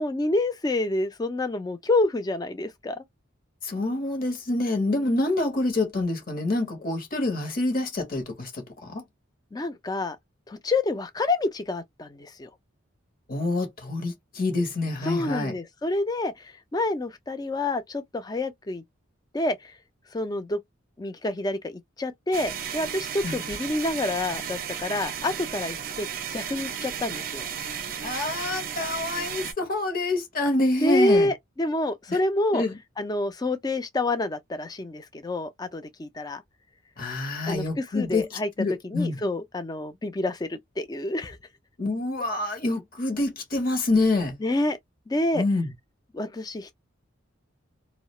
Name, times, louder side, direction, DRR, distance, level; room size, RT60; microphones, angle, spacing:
voice 1, 0.0-3.0 9.5-10.2 10.5-12.5 15.0-18.8 19.3-19.7 20.1-20.6 21.0-27.5 30.8-32.6 33.0-36.4 37.5-38.5 38.8-41.4 44.4-44.8 45.1-45.4 46.1-46.7, left 2 dB, 20° left, 0.3 m, -28 dB
voice 2, 3.6-9.0 13.3-15.5 23.2-23.4 27.6-31.3 32.1-32.2 32.5-32.8 37.0-39.2 41.8-44.3 45.3-45.7, left 2 dB, 45° left, 0.7 m, -27 dB
sound 1, 22.3-29.5, right 8 dB, 45° right, 0.4 m, -34 dB
2.3 x 2.0 x 2.9 m
head